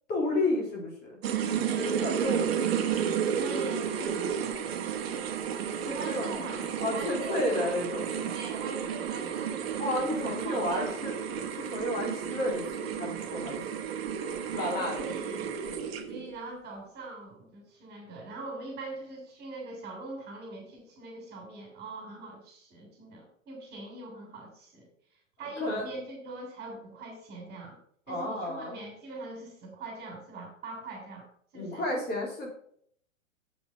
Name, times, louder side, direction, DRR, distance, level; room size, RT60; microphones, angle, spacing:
voice 1, 0.1-1.2 1.6-2.6 5.7-6.3 6.8-8.3 9.8-13.6 14.5-15.0 25.6-25.9 28.1-28.8 31.5-32.5, left 1 dB, 25° left, -1 dB, 3.1 m, -32 dB
sound 1, 1.2-16.3, right 8 dB, 50° right, 1.4 m, -32 dB
voice 2, 3.3-4.8 5.8-6.6 6.9-7.7 8.3-10.9 14.5-15.6 16.1-24.9 25.4-27.8 28.1-31.3 31.5-31.9, right 2 dB, 25° right, 1 dB, 3.4 m, -42 dB
8.0 x 7.0 x 5.4 m, 0.64 s
figure-of-eight pair, 110°, 39 cm